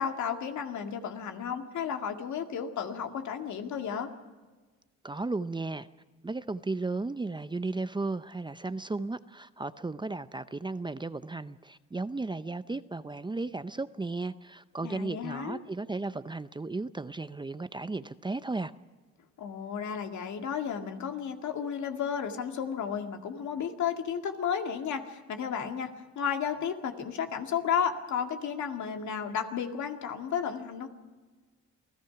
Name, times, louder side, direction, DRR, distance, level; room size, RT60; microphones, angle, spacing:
voice 1, 0.0-4.1 14.8-15.6 19.4-30.9, left 7 dB, 70° left, 5 dB, 2.1 m, -33 dB
voice 2, 5.0-5.9 6.2-18.7, right 3 dB, 15° right, 13 dB, 0.6 m, -35 dB
28.0 x 17.0 x 5.9 m, 1.3 s
cardioid pair, 90°, 30 cm